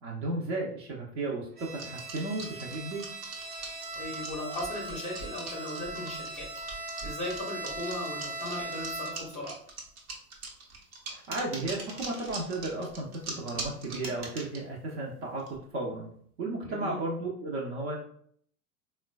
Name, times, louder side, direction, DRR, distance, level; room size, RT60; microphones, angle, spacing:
voice 1, 0.0-3.1 11.1-15.4 15.7-16.1 16.4-18.0, right 2 dB, 45° right, -2 dB, 0.6 m, -34 dB
Bowed string instrument, 1.6-9.4, right 2 dB, 85° right, 1.1 m, -40 dB
sound 1, 1.8-14.6 15.4-15.6, right 3 dB, 65° right, 0.9 m, -41 dB
voice 2, 3.9-6.5 6.8-9.6 16.6-16.9, left 1 dB, 15° left, -3 dB, 0.6 m, -37 dB
sound 2, 11.3-12.5 14.0-14.5, right 2 dB, 15° right, 0.3 m, -42 dB
3.7 x 2.2 x 2.2 m, 0.62 s
figure-of-eight pair, 85°, 45 cm